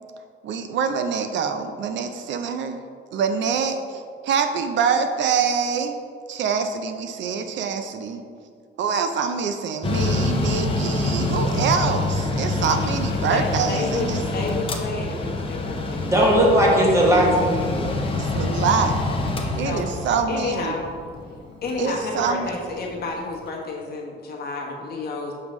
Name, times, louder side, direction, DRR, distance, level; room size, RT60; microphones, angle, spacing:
voice 1, 0.4-2.8 3.1-6.0 6.3-8.2 8.8-14.2 18.1-18.9 19.6-20.7 21.8-22.5, right 6 dB, 65° right, 7 dB, 0.5 m, -25 dB
Mechanical fan, 9.8-23.2, left 2 dB, 25° left, 0.6 m, -26 dB
voice 2, 13.3-14.1 14.3-16.3 19.6-19.8 20.3-20.9 21.6-25.3, left 3 dB, 50° left, -1 dB, 1.1 m, -30 dB
voice 3, 16.1-18.1, equal, 15° right, -3 dB, 1.2 m, -18 dB
6.5 x 5.3 x 3.1 m, 2.2 s
cardioid pair, 135°, 20 cm